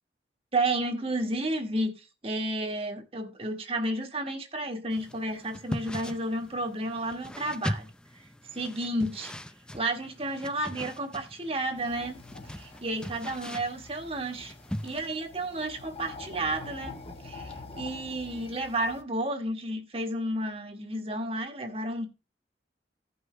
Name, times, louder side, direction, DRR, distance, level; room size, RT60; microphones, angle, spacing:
voice 1, 0.5-7.9 8.1-8.2 8.5-9.3 9.7-12.2 12.5-14.5 14.8-22.0, right 1 dB, 35° right, 1.5 m, -32 dB
sound 1, 4.9-15.2, equal, 5° left, 0.5 m, -40 dB
sound 2, 11.8-19.0, left 3 dB, 35° left, 1.2 m, -46 dB
16.0 x 5.6 x 3.2 m
head